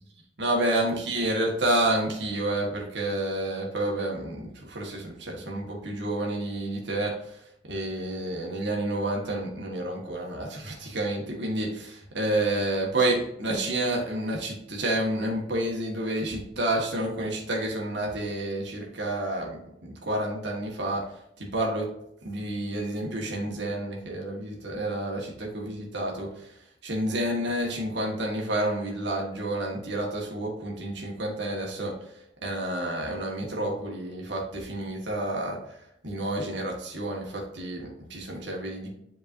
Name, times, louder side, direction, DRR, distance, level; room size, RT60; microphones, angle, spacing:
voice 1, 0.4-21.0 21.4-21.9 22.2-26.5 26.8-31.9 32.4-35.8 36.0-38.9, right 1 dB, 60° right, -1 dB, 1.6 m, -29 dB
7.6 x 4.6 x 2.7 m, 0.76 s
head